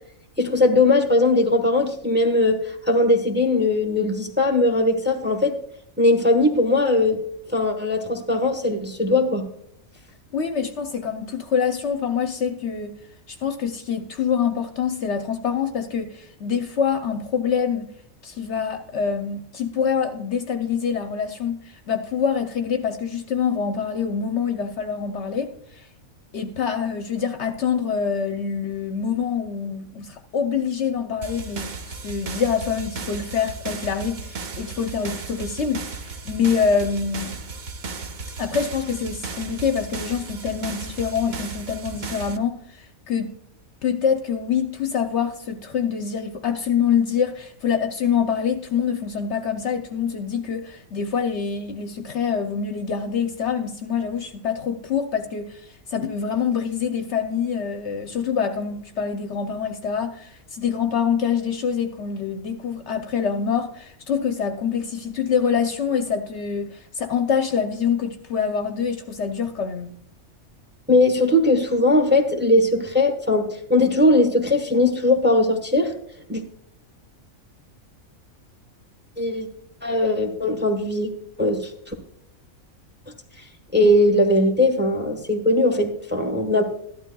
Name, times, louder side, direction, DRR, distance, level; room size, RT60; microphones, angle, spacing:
voice 1, 0.4-5.5 6.0-7.2 7.5-9.4 70.9-75.9 76.3-76.4 79.2-79.5 79.8-81.1 81.4-81.9 83.7-86.6, left 2 dB, 10° right, 1.0 m, -19 dB
voice 2, 10.3-12.9 13.3-17.9 18.2-25.9 26.3-37.4 38.4-43.3 43.8-69.9, left 7 dB, 60° left, 0.9 m, -25 dB
sound 1, 31.2-42.4, right 4 dB, 45° right, 0.7 m, -35 dB
13.5 x 12.0 x 2.3 m
omnidirectional pair, 1.4 m